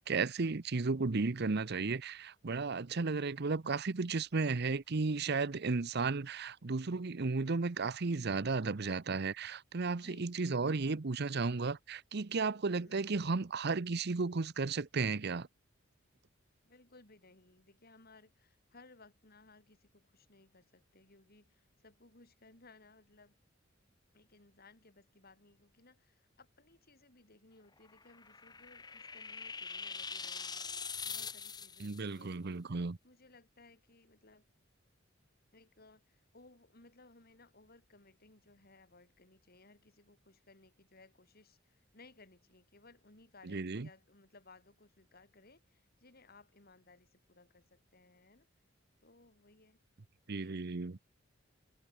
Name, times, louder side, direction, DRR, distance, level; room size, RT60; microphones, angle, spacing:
voice 1, 0.0-15.5 31.8-33.0 43.5-43.9 50.3-51.0, right 4 dB, 55° right, 0.8 m, -34 dB
voice 2, 9.9-10.3 12.7-13.1 16.6-23.4 24.1-32.8 33.0-34.4 35.5-48.5 49.0-49.8 50.4-50.6, left 3 dB, 50° left, 4.2 m, -62 dB
sound 1, 27.9-32.0, left 5 dB, 20° left, 1.3 m, -43 dB
head